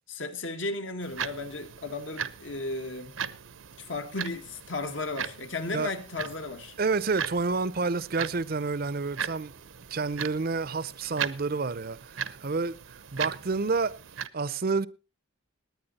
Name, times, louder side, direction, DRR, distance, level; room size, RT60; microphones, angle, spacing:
voice 1, 0.1-3.2 3.8-6.7, left 3 dB, 70° left, 1.7 m, -35 dB
sound 1, 1.0-14.3, right 7 dB, 80° right, 0.8 m, -39 dB
voice 2, 6.8-9.5 9.9-12.8 13.1-14.0 14.3-14.9, right 4 dB, 45° right, 0.6 m, -29 dB
20.0 x 9.4 x 4.1 m
head